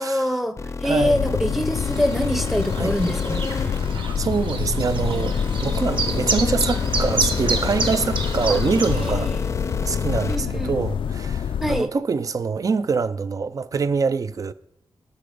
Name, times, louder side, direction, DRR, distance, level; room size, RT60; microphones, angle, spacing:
voice 1, 0.0-3.7 8.5-8.6 9.0-9.3 10.3-10.8 11.6-11.9, equal, ahead, 0.7 m, -25 dB
sound 1, 0.6-10.4, left 4 dB, 35° left, 0.5 m, -30 dB
voice 2, 0.8-1.2 2.8-2.9 4.2-9.3 9.8-14.5, right 5 dB, 40° right, 0.4 m, -25 dB
sound 2, 1.0-11.8, left 8 dB, 85° left, 0.3 m, -27 dB
Chirp tweet, 1.7-9.1, right 4 dB, 70° right, 1.1 m, -30 dB
12.5 x 5.9 x 5.1 m
wide cardioid pair, 145°, 9 cm